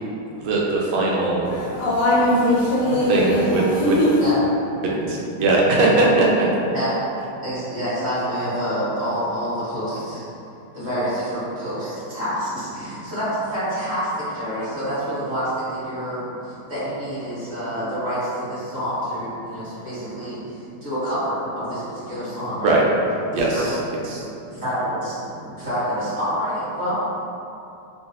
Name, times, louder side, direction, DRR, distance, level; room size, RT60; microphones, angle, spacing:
voice 1, 0.4-1.5 3.1-4.0 4.8-6.5 22.6-22.8 23.3-23.8 24.1-24.3, right 2 dB, 85° right, -3 dB, 1.5 m, -20 dB
voice 2, 1.4-4.3, left 1 dB, 75° left, -6 dB, 1.1 m, -20 dB
voice 3, 2.8-3.2 4.2-4.4 6.7-6.9 7.4-10.2 10.7-13.2 13.5-14.0 14.3-16.2 16.7-20.3 20.8-21.6 22.1-22.8 23.3-23.7 24.6-25.1 25.6-26.9, equal, 35° right, -14 dB, 1.5 m, -27 dB
3.7 x 2.3 x 2.8 m, 2.8 s
omnidirectional pair, 2.2 m